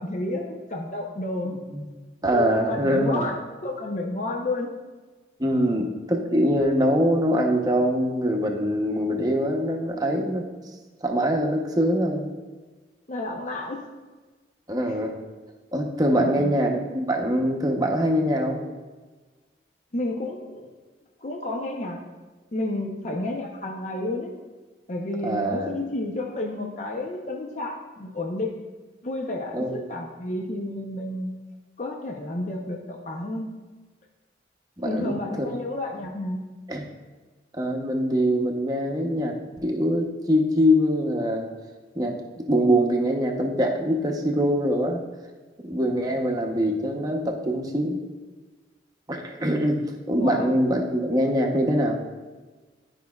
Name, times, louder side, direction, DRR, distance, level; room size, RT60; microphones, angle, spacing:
voice 1, 0.0-1.6 2.3-4.7 13.1-13.8 14.9-15.0 16.1-16.5 19.9-20.7 21.2-22.0 22.5-24.3 24.9-28.6 29.0-31.4 31.8-33.5 34.8-36.4 50.2-50.4, left 2 dB, 40° left, 0 dB, 0.6 m, -31 dB
voice 2, 2.2-3.3 5.4-10.4 11.0-12.3 14.7-15.1 15.7-18.6 25.2-25.7 29.5-29.9 34.8-35.5 36.7-36.8 37.5-39.3 39.6-41.5 42.0-45.0 45.6-48.0 49.1-49.8 50.1-52.0, equal, 20° right, 2 dB, 0.7 m, -23 dB
11.5 x 5.2 x 2.3 m, 1.3 s
head